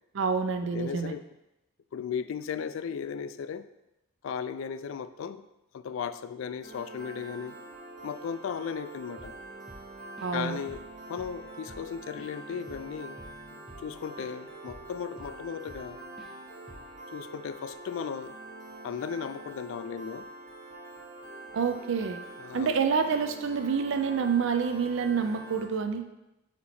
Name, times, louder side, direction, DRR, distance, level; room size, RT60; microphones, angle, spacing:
voice 1, 0.1-1.1 10.2-10.6 21.5-22.2 22.5-26.0, right 6 dB, 60° right, 7 dB, 0.4 m, -27 dB
voice 2, 0.7-1.2 1.9-3.7 4.2-5.4 5.7-7.6 8.0-9.3 10.3-13.2 13.8-16.0 17.1-18.4 18.8-20.3 22.4-22.8, left 7 dB, 65° left, 13 dB, 0.3 m, -36 dB
Piano, 6.6-25.6, right 2 dB, 45° right, 1.7 m, -45 dB
Drum kit / Drum, 9.2-9.4 9.7-10.4 10.7-10.9 11.2-14.3 14.7-15.9 16.2-16.4 16.7-17.0, equal, 5° right, 0.7 m, -50 dB
8.4 x 2.9 x 4.2 m, 0.93 s
head